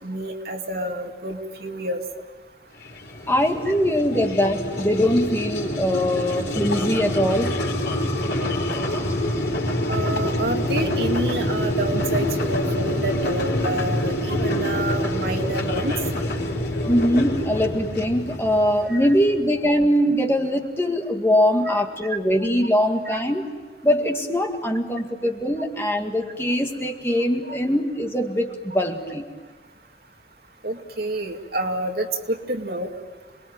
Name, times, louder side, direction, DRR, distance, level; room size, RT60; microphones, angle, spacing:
voice 1, 0.0-2.0 9.9-15.9 18.9-19.1 21.6-21.7 22.1-22.2 23.1-23.2 30.6-32.9, right 1 dB, 65° right, 3 dB, 2.4 m, -28 dB
sound 1, 2.8-19.4, left 1 dB, 80° left, 4.5 m, -26 dB
voice 2, 3.3-7.6 16.9-23.5 23.8-29.3, equal, 15° left, 2 dB, 2.0 m, -22 dB
28.5 x 21.5 x 9.1 m, 1.3 s
head